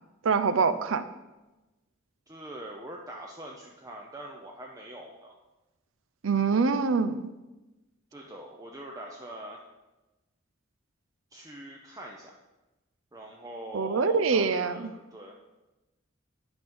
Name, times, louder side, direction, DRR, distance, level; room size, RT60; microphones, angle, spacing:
voice 1, 0.2-1.0 6.2-7.3 13.7-14.9, right 5 dB, 70° right, 11 dB, 0.5 m, -25 dB
voice 2, 2.3-5.4 8.1-9.6 11.3-12.3 13.1-15.4, right 1 dB, 15° right, -1 dB, 0.5 m, -43 dB
10.5 x 3.6 x 5.4 m, 1.1 s
head